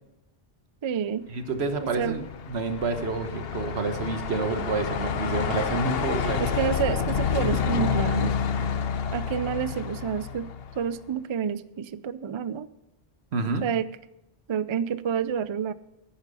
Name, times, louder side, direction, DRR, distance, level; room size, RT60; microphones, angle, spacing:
voice 1, 0.8-1.3 2.0-2.3 6.4-8.3 9.1-10.5 10.8-12.7 13.6-13.9 14.5-15.7, right 8 dB, 50° right, 16 dB, 0.3 m, -29 dB
voice 2, 1.3-6.4 13.3-13.6, right 3 dB, 85° right, 8 dB, 1.4 m, -28 dB
Truck, 1.6-11.0, left 7 dB, 70° left, 1.0 m, -29 dB
10.5 x 9.9 x 5.5 m, 0.91 s
omnidirectional pair, 1.1 m